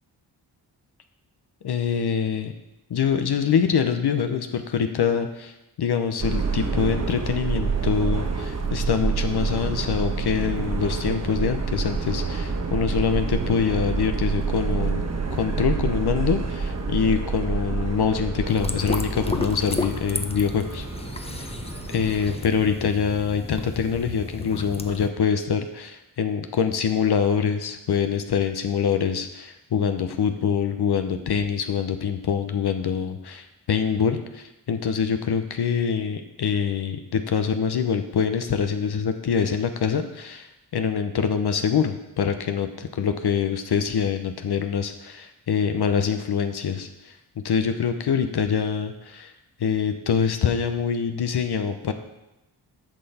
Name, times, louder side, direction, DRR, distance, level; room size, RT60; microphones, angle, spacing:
voice 1, 1.6-2.5 2.9-15.0 15.3-20.9 21.3-21.5 21.9-47.1 47.4-49.3 49.6-51.9, left 7 dB, 65° left, 7 dB, 0.8 m, -25 dB
Subway metro underground, 6.2-22.3, right 5 dB, 40° right, 1.1 m, -28 dB
sound 1, 18.5-25.1, left 2 dB, 15° left, 0.8 m, -33 dB
10.5 x 5.8 x 4.2 m, 0.94 s
cardioid pair, 55°, 42 cm